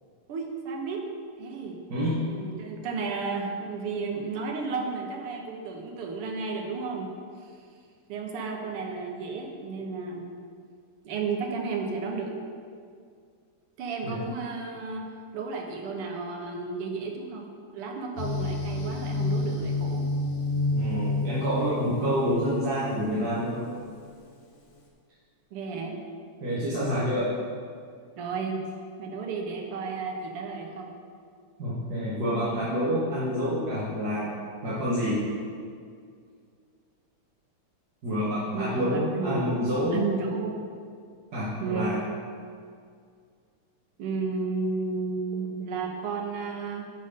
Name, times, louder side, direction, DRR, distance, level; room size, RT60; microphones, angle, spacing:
voice 1, 0.3-1.0 1.4-1.8 2.3-7.1 8.1-10.3 11.1-12.3 13.8-15.0 15.3-20.0 25.5-26.0 28.2-28.6 29.0-30.9 38.5-39.6 39.9-40.5 41.6-41.9 44.0-46.9, right 4 dB, 90° right, 2 dB, 1.9 m, -33 dB
sound 1, 18.2-23.7, left 2 dB, 50° left, 1.3 m, -29 dB
voice 2, 20.7-23.6 25.7-25.8 26.4-27.3 31.6-34.3 34.6-35.2 38.0-40.0 41.3-42.0, equal, 50° right, -9 dB, 1.8 m, -28 dB
10.5 x 4.1 x 5.2 m, 2.2 s
omnidirectional pair, 2.4 m